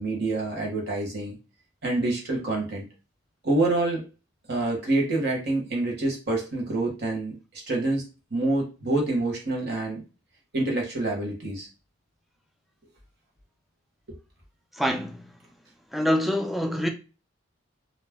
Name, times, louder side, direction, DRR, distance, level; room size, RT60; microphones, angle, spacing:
voice 1, 0.0-1.4 1.8-2.8 3.4-4.1 4.5-10.0 10.5-11.7, right 2 dB, 55° right, 1.1 m, -27 dB
voice 2, 14.7-15.3 15.9-16.9, equal, ahead, 0.3 m, -25 dB
2.4 x 2.0 x 3.5 m
head